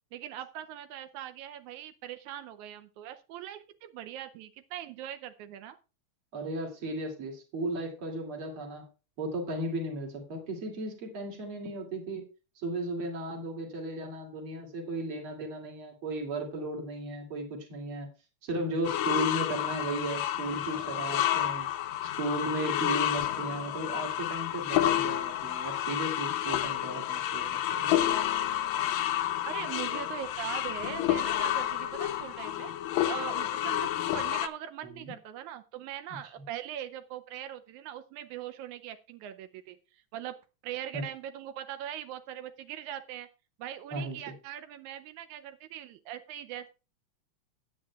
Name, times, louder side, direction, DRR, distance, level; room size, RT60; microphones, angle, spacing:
voice 1, 0.1-5.8 29.4-32.7 33.0-33.9 34.1-40.4 40.6-43.3 43.6-46.7, right 11 dB, 85° right, 10 dB, 2.1 m, -41 dB
voice 2, 6.3-8.8 9.2-12.3 12.6-18.1 18.4-21.7 22.0-27.9 34.8-35.1 40.9-41.0 43.9-44.2, right 1 dB, 45° right, 1 dB, 3.3 m, -35 dB
sound 1, 18.8-34.5, left 12 dB, 80° left, 2.0 m, -30 dB
17.0 x 9.4 x 2.4 m, 0.32 s
omnidirectional pair, 3.4 m